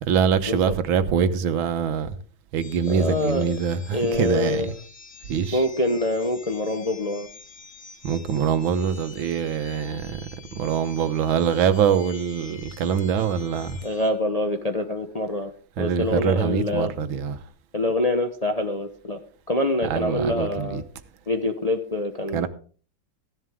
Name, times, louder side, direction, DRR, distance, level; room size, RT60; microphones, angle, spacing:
voice 1, 0.0-2.2 2.5-4.8 5.3-5.6 8.0-10.3 10.6-13.8 15.8-17.4 19.8-20.8 22.3-22.5, right 7 dB, 90° right, 1.8 m, -24 dB
sound 1, 2.6-14.1, left 5 dB, 90° left, 2.8 m, -47 dB
voice 2, 2.9-3.5 3.9-4.7 5.5-7.3 13.8-15.5 15.8-16.9 17.7-19.2 19.5-20.8 21.3-22.5, left 2 dB, 35° left, 0.6 m, -25 dB
15.0 x 11.0 x 3.6 m
omnidirectional pair, 2.1 m